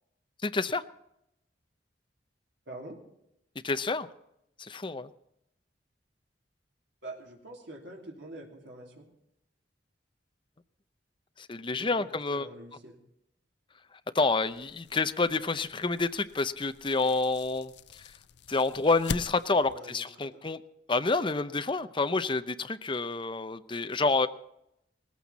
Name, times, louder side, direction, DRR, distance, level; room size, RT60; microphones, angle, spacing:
voice 1, 0.4-0.8 3.6-4.1 4.6-5.1 11.4-12.5 14.1-17.7 18.5-20.6 20.9-24.3, left 3 dB, 30° left, 10 dB, 0.7 m, -28 dB
voice 2, 2.7-3.0 7.0-9.1 11.8-13.0 19.7-20.4, right 1 dB, 85° right, -1 dB, 3.1 m, -45 dB
sound 1, 14.2-19.8, left 5 dB, 70° left, 0.5 m, -43 dB
19.0 x 14.5 x 4.1 m, 0.80 s
head